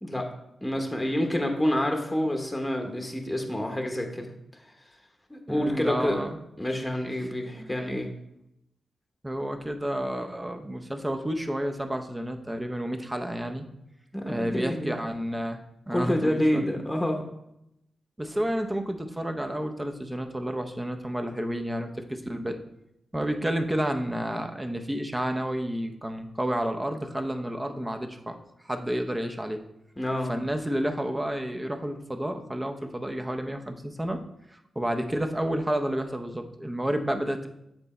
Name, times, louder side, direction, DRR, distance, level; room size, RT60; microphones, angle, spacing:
voice 1, 0.6-4.3 4.6-4.7 5.3-6.2 6.6-8.1 14.1-15.0 15.9-17.2 30.0-30.3, left 1 dB, 15° left, 3 dB, 1.0 m, -28 dB
voice 2, 5.5-6.4 7.6-7.8 9.2-13.6 14.2-15.6 15.9-16.6 18.2-22.6 23.1-28.4 28.6-29.6 30.3-34.2 34.5-37.5, right 1 dB, 15° right, 5 dB, 0.7 m, -30 dB
7.8 x 4.0 x 4.3 m, 0.82 s
cardioid pair, 80°, 0 cm